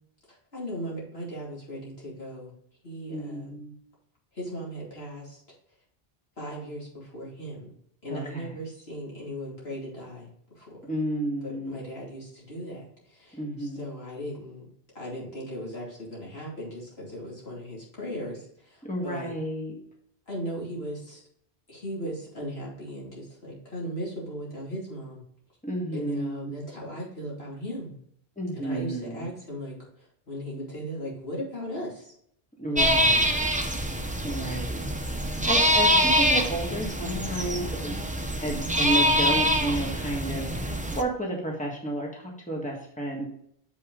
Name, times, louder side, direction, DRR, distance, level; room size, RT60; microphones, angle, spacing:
voice 1, 0.3-2.5 2.8-3.6 4.3-5.4 6.4-7.7 8.0-10.3 10.5-10.7 11.4-14.7 14.9-19.4 20.3-21.2 21.7-25.2 25.9-28.0 28.6-32.1, equal, 75° left, -4 dB, 2.9 m, -37 dB
voice 2, 3.1-3.7 8.1-8.5 10.9-11.7 13.4-13.9 18.8-19.8 25.6-26.5 28.4-29.3 32.6-33.3 34.2-34.8 35.2-38.0 38.4-43.3, right 1 dB, 5° left, -1 dB, 1.6 m, -31 dB
sound 1, 32.8-41.0, equal, 10° right, 0.5 m, -25 dB
6.9 x 5.5 x 3.8 m, 0.68 s
omnidirectional pair, 1.1 m